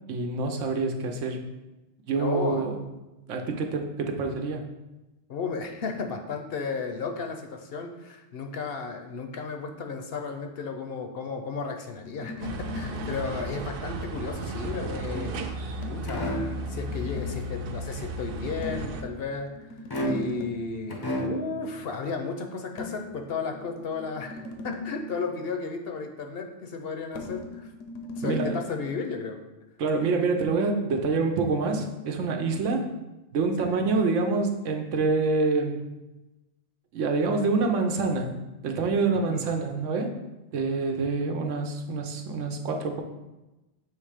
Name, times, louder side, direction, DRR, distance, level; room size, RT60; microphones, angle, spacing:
voice 1, 0.1-1.4 2.1-2.8 3.3-4.7 28.2-28.6 29.8-32.9 33.3-35.8 36.9-38.3 38.6-40.1 40.5-43.0, right 3 dB, 80° right, 4 dB, 1.1 m, -26 dB
voice 2, 2.2-2.7 5.3-19.7 20.0-27.7 28.2-29.4 33.6-33.8 39.1-39.5, left 5 dB, 60° left, 5 dB, 0.7 m, -34 dB
sound 1, 11.9-13.4 15.8-17.5 18.6-20.7 22.8-25.2 27.1-28.6, left 2 dB, 85° left, 1.1 m, -39 dB
sound 2, 12.4-19.0, right 1 dB, 60° right, 0.7 m, -34 dB
sound 3, 15.1-15.7 16.1-16.6 19.9-20.5 20.9-21.6, right 1 dB, 30° left, 0.4 m, -31 dB
6.5 x 3.2 x 4.9 m, 1.0 s
omnidirectional pair, 1.3 m